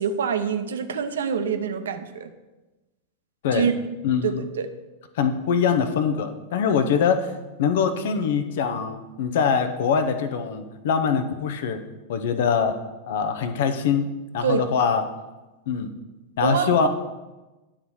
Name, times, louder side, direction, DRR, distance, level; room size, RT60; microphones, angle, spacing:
voice 1, 0.0-2.3 3.5-3.7 4.2-4.7 14.4-14.6 16.4-16.9, right 7 dB, 65° right, 8 dB, 0.7 m, -25 dB
voice 2, 4.0-4.5 5.1-7.3 7.6-11.8 12.1-12.8 13.1-14.1 14.3-15.0 15.7-15.9 16.4-16.9, left 6 dB, 55° left, 8 dB, 0.7 m, -23 dB
10.0 x 4.0 x 6.3 m, 1.1 s
figure-of-eight pair, 90°, 0 cm